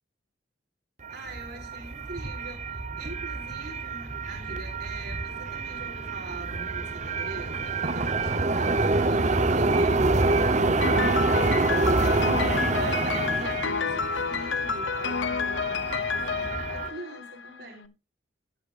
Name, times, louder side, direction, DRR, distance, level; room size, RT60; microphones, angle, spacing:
sound 1, 1.0-16.9, right 3 dB, 40° right, 0.9 m, -27 dB
voice 1, 1.1-17.9, right 1 dB, 60° right, 4.2 m, -43 dB
Piano, 10.8-17.6, left 5 dB, 75° left, 0.8 m, -29 dB
17.0 x 8.1 x 2.5 m
head